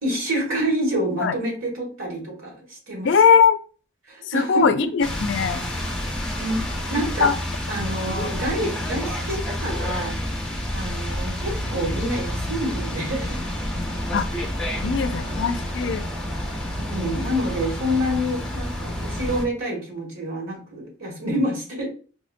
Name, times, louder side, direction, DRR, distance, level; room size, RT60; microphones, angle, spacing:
voice 1, 0.0-3.1 4.1-4.9 6.4-6.6 6.9-7.4 7.7-10.2 10.7-13.5 14.7-15.6 16.8-21.9, equal, 80° right, -2 dB, 1.6 m, -27 dB
voice 2, 3.0-3.6 4.3-5.6 7.2-7.3 8.1-8.2 14.1-14.3 14.8-16.0, left 6 dB, 55° left, 10 dB, 0.3 m, -20 dB
sound 1, 5.0-19.4, left 1 dB, 5° left, 0.6 m, -29 dB
4.8 x 2.5 x 2.5 m, 0.38 s
head